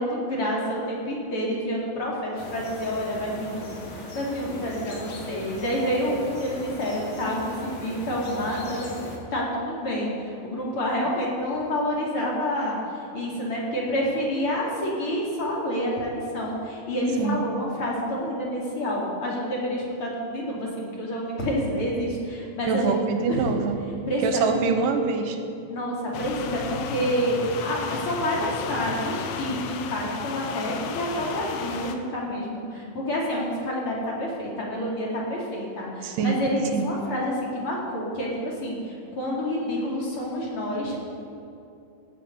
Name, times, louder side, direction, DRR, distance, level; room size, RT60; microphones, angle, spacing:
voice 1, 0.0-9.0 9.3-22.9 23.3-23.5 24.1-24.6 25.7-41.0, equal, 40° left, -4 dB, 2.8 m, -28 dB
sound 1, 2.4-9.2, left 2 dB, 60° left, 1.2 m, -39 dB
voice 2, 22.7-23.8 24.2-25.4 36.0-36.4 36.7-36.9, right 5 dB, 75° right, 6 dB, 2.2 m, -24 dB
sound 2, 26.1-32.0, left 6 dB, 75° left, 2.2 m, -34 dB
16.5 x 8.4 x 5.4 m, 2.6 s
omnidirectional pair, 4.3 m